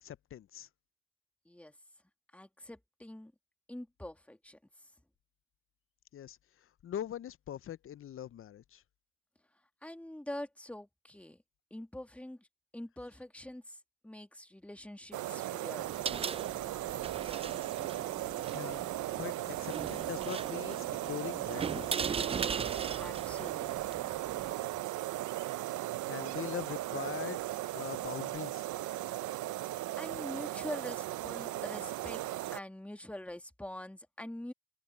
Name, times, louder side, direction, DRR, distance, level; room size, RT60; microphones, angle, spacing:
voice 1, 0.0-0.7 6.1-6.4 6.8-8.8 18.5-18.8 19.1-21.9 26.1-27.4 27.7-28.7, left 11 dB, 45° left, 0.5 m, -42 dB
voice 2, 2.3-3.3 3.7-4.6 9.8-11.4 11.7-12.5 12.7-13.8 14.0-15.9 23.0-24.0 24.3-25.0 25.7-26.0 29.6-32.2 32.5-34.5, left 1 dB, 5° left, 1.8 m, -45 dB
sound 1, 15.1-32.6, right 15 dB, 75° right, 0.7 m, -37 dB
sound 2, 15.8-24.5, right 6 dB, 20° right, 0.3 m, -39 dB
open air
cardioid pair, 90°, 30 cm